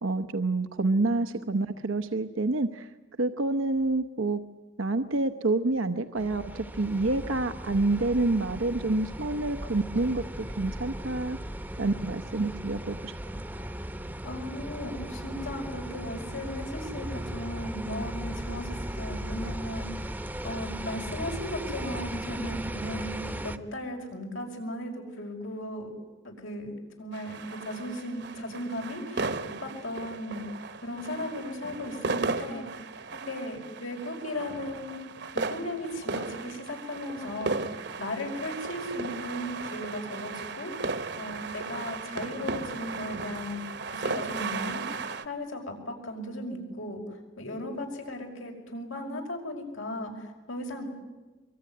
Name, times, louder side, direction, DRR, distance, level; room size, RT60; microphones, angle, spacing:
voice 1, 0.0-2.9 3.2-4.4 4.8-11.4 11.8-13.1, right 2 dB, 85° right, 10 dB, 0.9 m, -28 dB
sound 1, 6.2-23.6, right 1 dB, 10° right, 0.9 m, -37 dB
voice 2, 14.2-20.1 20.4-25.9 26.2-30.4 30.8-32.7 33.1-35.0 35.3-40.7 41.2-43.6 43.9-50.8, left 1 dB, 85° left, 2 dB, 5.6 m, -36 dB
sound 2, 27.1-45.2, right 4 dB, 55° right, 1.2 m, -36 dB
24.0 x 23.0 x 9.6 m, 1.2 s
head